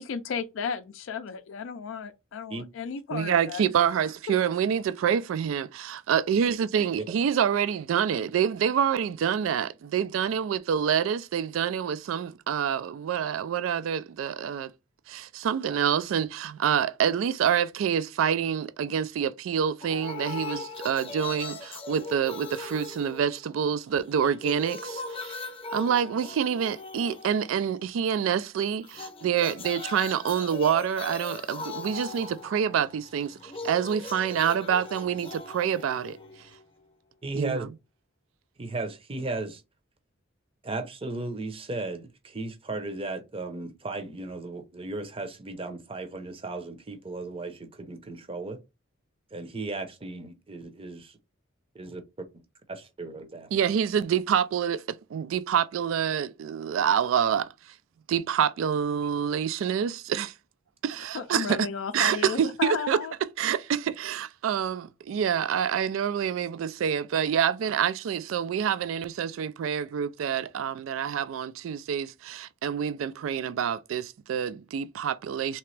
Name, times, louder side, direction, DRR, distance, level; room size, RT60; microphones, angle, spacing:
voice 1, 0.0-3.6 61.1-63.1, left 6 dB, 75° left, 0.4 m, -34 dB
voice 2, 3.1-14.7 15.1-21.6 21.9-25.4 25.7-36.2 37.3-37.7 53.5-57.5 58.1-60.3 60.8-61.7 61.9-63.0 63.4-75.6, right 8 dB, 85° right, 0.3 m, -27 dB
sound 1, 19.8-23.8 24.1-27.9 28.8-36.8, left 3 dB, 30° left, 0.6 m, -40 dB
voice 3, 37.2-37.7 38.6-39.6 40.6-48.6 49.3-51.2 51.7-52.0 52.7-53.5, right 2 dB, 30° right, 0.6 m, -35 dB
3.3 x 2.9 x 3.2 m
head